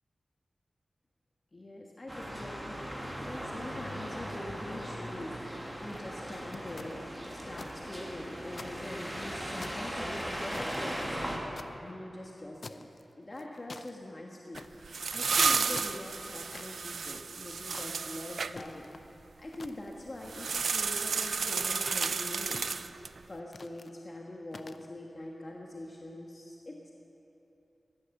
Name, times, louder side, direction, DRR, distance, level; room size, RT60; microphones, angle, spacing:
voice 1, 1.5-7.0 7.3-11.4 11.8-22.8 23.3-26.9, left 1 dB, 35° left, -1 dB, 1.3 m, -44 dB
sound 1, 2.1-11.4, equal, ahead, 2.0 m, -38 dB
sound 2, 5.7-6.0 6.5-7.7 8.1-8.2 8.5-9.2 9.6-11.7 12.6-13.0 13.4-13.9 14.6-14.9 15.5-16.7 17.5-17.9 18.5-19.1 19.5-20.1 20.6-21.0 21.5-22.0 22.5-23.1 23.5-23.9 24.5-24.9, left 3 dB, 55° left, 0.5 m, -47 dB
sound 3, 14.5-18.5 20.3-23.2, right 5 dB, 90° right, 0.4 m, -32 dB
14.5 x 11.5 x 7.1 m, 3.0 s
wide cardioid pair, 100°, 0 cm